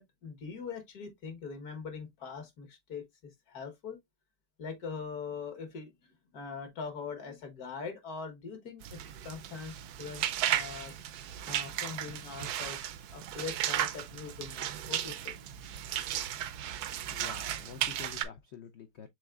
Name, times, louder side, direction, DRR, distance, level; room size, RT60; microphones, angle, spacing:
voice 1, 0.0-4.0 4.6-5.9 6.3-11.0 11.5-12.8 13.1-15.4, left 5 dB, 60° left, 1.7 m, -42 dB
sound 1, 8.8-18.3, right 11 dB, 75° right, 1.0 m, -35 dB
voice 2, 17.1-19.1, left 8 dB, 85° left, 0.5 m, -47 dB
6.3 x 3.6 x 2.3 m
omnidirectional pair, 1.8 m